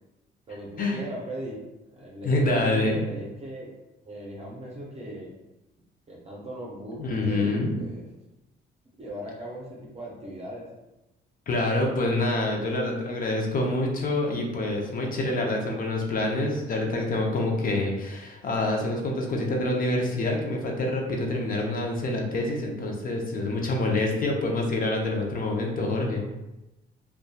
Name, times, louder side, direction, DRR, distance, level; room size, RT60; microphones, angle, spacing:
voice 1, 0.5-1.6 1.9-3.7 4.0-5.3 6.1-8.1 9.0-10.7, right 1 dB, 30° right, -4 dB, 0.6 m, -38 dB
voice 2, 2.2-3.0 7.0-7.8 11.5-26.3, left 2 dB, 45° left, 0 dB, 0.6 m, -26 dB
2.6 x 2.2 x 2.2 m, 0.99 s
cardioid pair, 90°, 20 cm